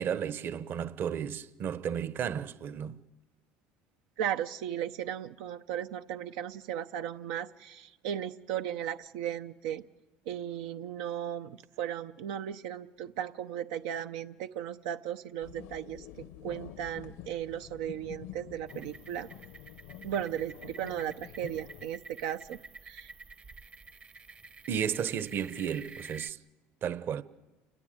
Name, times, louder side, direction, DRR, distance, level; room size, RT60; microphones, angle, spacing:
voice 1, 0.0-3.0 24.7-26.4 26.8-27.2, right 8 dB, 45° right, 1.0 m, -33 dB
voice 2, 4.2-9.8 10.3-16.1 16.4-19.3 20.0-23.1, right 10 dB, 90° right, 0.8 m, -36 dB
sound 1, 15.4-21.9, left 12 dB, 80° left, 1.0 m, -48 dB
sound 2, 18.7-26.3, right 3 dB, 25° right, 0.8 m, -50 dB
28.5 x 21.0 x 8.9 m
cardioid pair, 120°, 5 cm